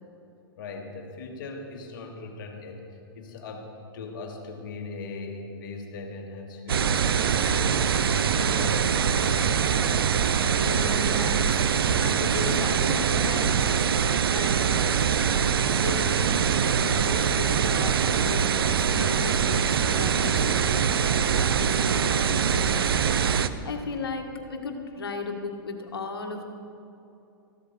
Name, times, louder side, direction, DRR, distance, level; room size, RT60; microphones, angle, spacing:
voice 1, 0.6-9.6, left 3 dB, 60° left, 1 dB, 2.0 m, -39 dB
sound 1, 6.7-23.5, right 7 dB, 80° right, 0.6 m, -23 dB
voice 2, 10.6-11.6 12.0-13.9 14.2-15.0 15.3-21.0 21.3-26.5, left 3 dB, 85° left, 4 dB, 1.7 m, -36 dB
14.5 x 8.2 x 7.0 m, 2.7 s
hypercardioid pair, 115°, 12 cm